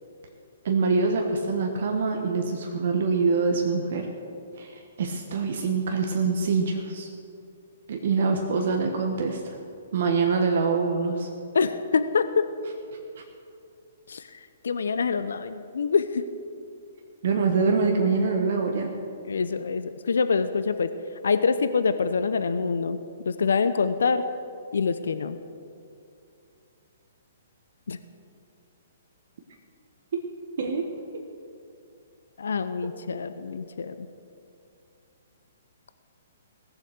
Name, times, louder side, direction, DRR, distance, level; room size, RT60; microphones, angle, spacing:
voice 1, 0.6-4.1 4.6-7.1 7.9-9.4 9.9-11.3 17.2-18.9 30.1-30.2 30.6-30.9 32.8-32.9, right 4 dB, 60° right, 3 dB, 1.3 m, -25 dB
voice 2, 11.5-12.5 14.1-14.4 14.6-16.3 19.3-20.9 21.2-23.0 23.2-24.3 24.7-25.4 27.9-28.0 32.4-34.1, left 5 dB, 75° left, 11 dB, 0.6 m, -25 dB
17.0 x 7.4 x 6.6 m, 2.5 s
hypercardioid pair, 130°, 0 cm